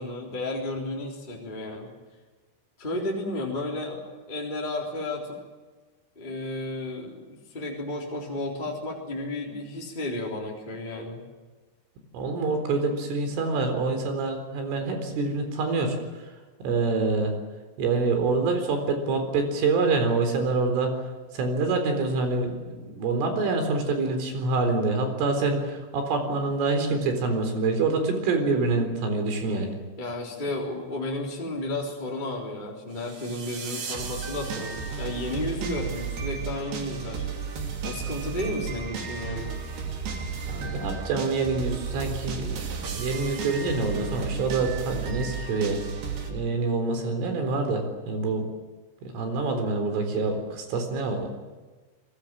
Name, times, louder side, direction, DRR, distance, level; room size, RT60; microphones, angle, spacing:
voice 1, 0.0-1.9 2.8-4.0 4.3-5.4 6.1-11.2 30.0-37.3 37.8-39.5 40.3-40.5, left 1 dB, 10° left, -2 dB, 3.1 m, -33 dB
voice 2, 12.1-16.0 16.6-17.4 17.8-20.9 21.3-29.8 40.5-45.9 46.3-48.5 49.0-51.3, right 3 dB, 80° right, 6 dB, 6.6 m, -26 dB
sound 1, 33.0-46.3, right 6 dB, 60° right, 4.5 m, -33 dB
30.0 x 19.5 x 7.7 m, 1.3 s
omnidirectional pair, 5.6 m